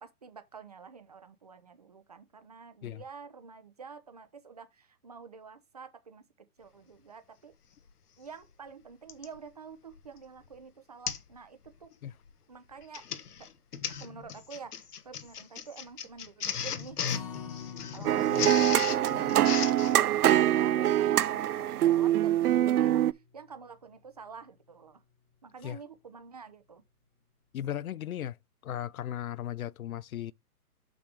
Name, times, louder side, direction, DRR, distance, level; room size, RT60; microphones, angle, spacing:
voice 1, 0.0-7.5 8.2-11.9 12.5-13.1 13.4-13.5 14.0-17.0 17.9-25.0 25.4-26.8, right 5 dB, 25° right, 0.6 m, -48 dB
Printer, 7.9-8.0 9.1-9.4 9.9-10.2 10.4-10.6 11.1-11.3 11.7-11.9 12.7-20.0, left 7 dB, 80° left, 1.3 m, -36 dB
Acoustic guitar, 17.1-23.4 23.8-23.9 24.3-24.4, left 7 dB, 20° left, 1.0 m, -47 dB
sound 1, 18.1-23.1, right 12 dB, 75° right, 0.6 m, -24 dB
voice 2, 27.5-28.4 28.6-30.3, left 11 dB, 65° left, 0.5 m, -36 dB
6.8 x 6.0 x 3.4 m
hypercardioid pair, 170°, 45 cm